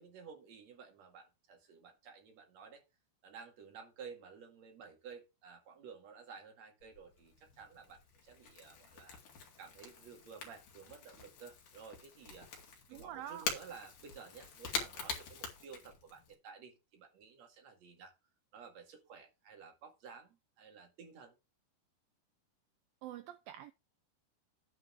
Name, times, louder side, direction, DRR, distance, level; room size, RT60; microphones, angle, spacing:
voice 1, 0.0-2.8 3.2-9.2 9.6-12.5 12.9-18.1 18.5-21.3, right 6 dB, 50° right, 2.8 m, -53 dB
Crackle / Crack, 6.8-16.3, left 5 dB, 55° left, 3.4 m, -45 dB
voice 2, 12.9-13.5 23.0-23.7, right 11 dB, 85° right, 2.0 m, -46 dB
9.7 x 4.6 x 6.1 m
omnidirectional pair, 4.8 m